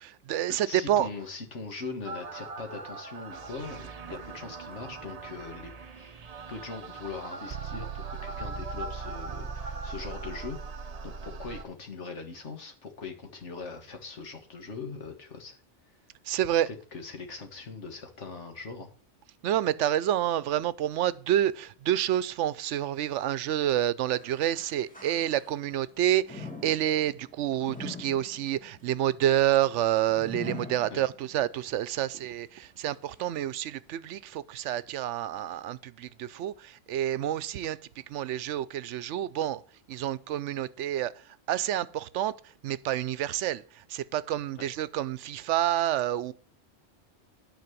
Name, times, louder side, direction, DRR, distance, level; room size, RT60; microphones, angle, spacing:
voice 1, 0.0-1.1 16.2-16.7 19.4-37.8 38.1-39.6 39.9-41.1 41.5-42.3 42.6-46.3, right 12 dB, 80° right, 0.9 m, -28 dB
voice 2, 0.6-6.2 6.5-15.6 16.7-18.9 30.9-31.0, left 4 dB, 75° left, 1.9 m, -41 dB
sound 1, 2.0-11.6, right 4 dB, 40° right, 0.7 m, -39 dB
sound 2, 24.2-25.8 26.2-31.5 32.0-32.1 32.9-33.0, left 3 dB, 5° left, 1.7 m, -44 dB
9.5 x 4.5 x 7.3 m
omnidirectional pair, 1.2 m